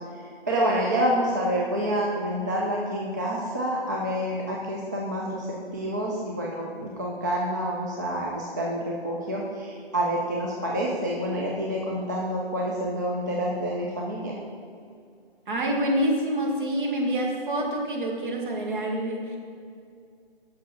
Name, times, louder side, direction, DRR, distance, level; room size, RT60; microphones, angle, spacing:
voice 1, 0.0-14.4, equal, 20° right, -3 dB, 0.4 m, -28 dB
voice 2, 15.5-19.4, right 1 dB, 55° right, 0 dB, 1.9 m, -27 dB
6.7 x 6.2 x 5.7 m, 2.3 s
figure-of-eight pair, 150°, 31 cm